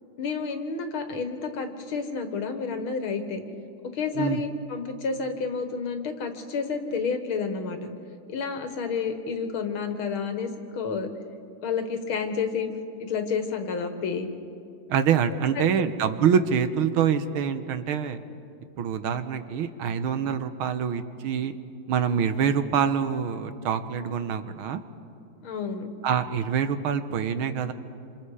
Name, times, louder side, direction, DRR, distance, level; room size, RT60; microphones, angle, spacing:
voice 1, 0.2-3.4 3.9-7.9 8.3-11.1 11.6-12.7 13.0-14.3 15.5-15.9 25.4-25.9, left 5 dB, 75° left, 6 dB, 2.4 m, -30 dB
voice 2, 14.9-18.2 18.8-21.5 21.9-24.8 26.0-27.7, right 7 dB, 85° right, 10 dB, 1.8 m, -25 dB
27.0 x 26.5 x 4.9 m, 2.6 s
omnidirectional pair, 2.3 m